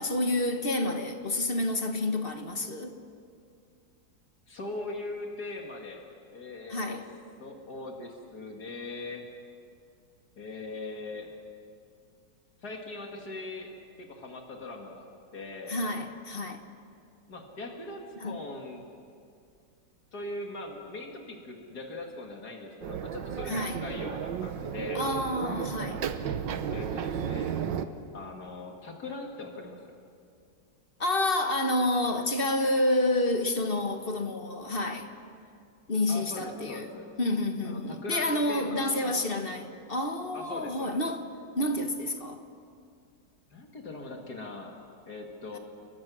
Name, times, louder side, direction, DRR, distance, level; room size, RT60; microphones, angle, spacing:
voice 1, 0.0-2.9 6.7-7.1 15.7-16.6 18.2-18.4 23.4-23.8 24.9-26.0 31.0-35.1 35.9-36.9 37.2-41.2 41.6-42.4, left 1 dB, 35° left, 1.4 m, -29 dB
voice 2, 4.5-6.0 6.3-7.0 7.4-9.2 10.4-11.3 12.6-13.7 14.0-15.1 15.3-15.8 17.3-18.8 20.1-25.0 26.7-27.6 28.1-29.9 36.1-37.1 37.6-39.7 40.3-41.0 43.5-44.7 45.1-45.6, left 2 dB, 60° left, 2.6 m, -40 dB
sound 1, 22.8-27.9, right 8 dB, 85° right, 1.7 m, -33 dB
29.5 x 22.0 x 6.2 m
omnidirectional pair, 2.0 m